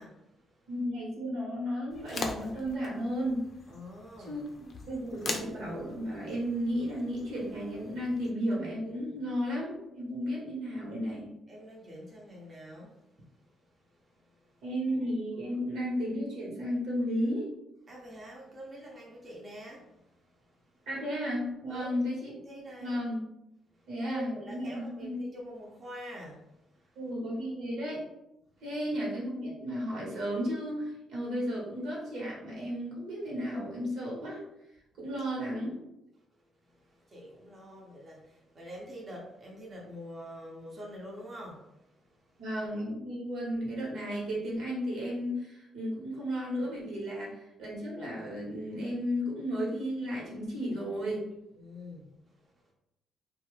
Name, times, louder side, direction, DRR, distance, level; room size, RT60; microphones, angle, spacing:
voice 1, 0.0-0.7 3.7-4.4 11.5-14.6 17.9-20.9 21.7-22.0 22.3-23.0 23.7-27.0 28.5-28.6 36.6-42.4 51.5-52.7, equal, 35° right, 0.8 m, -47 dB
voice 2, 0.7-3.4 4.2-11.3 14.6-17.5 20.9-22.3 22.8-23.2 23.9-25.2 27.0-28.0 28.6-34.4 35.0-35.8 42.4-51.3, equal, 80° right, 1.2 m, -34 dB
sound 1, 1.9-8.3, left 3 dB, 50° left, 0.5 m, -42 dB
2.7 x 2.3 x 3.2 m
cardioid pair, 90°, 0 cm